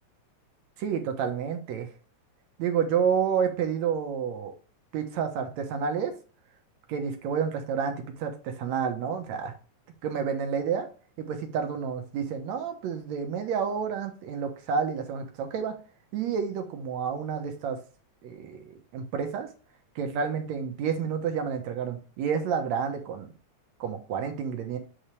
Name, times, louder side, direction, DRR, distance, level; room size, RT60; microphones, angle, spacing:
voice 1, 0.8-1.9 2.6-4.5 4.9-6.1 6.9-9.5 10.0-10.9 11.2-15.8 16.1-17.8 18.2-19.5 20.0-23.3 23.8-24.8, right 7 dB, 70° right, 5 dB, 2.2 m, -29 dB
8.8 x 3.9 x 3.2 m, 0.38 s
omnidirectional pair, 3.5 m